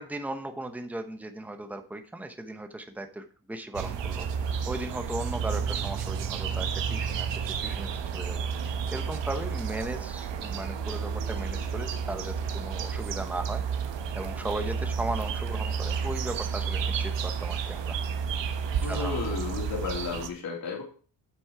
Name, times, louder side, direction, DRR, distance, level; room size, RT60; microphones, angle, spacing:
voice 1, 0.0-13.6 14.1-17.9 18.9-19.2, right 1 dB, 5° right, 6 dB, 1.0 m, -37 dB
sound 1, 3.7-20.3, right 6 dB, 65° right, 1.2 m, -31 dB
voice 2, 18.8-20.8, left 5 dB, 50° left, -3 dB, 3.4 m, -33 dB
8.8 x 6.1 x 4.7 m, 0.41 s
cardioid pair, 110°, 46 cm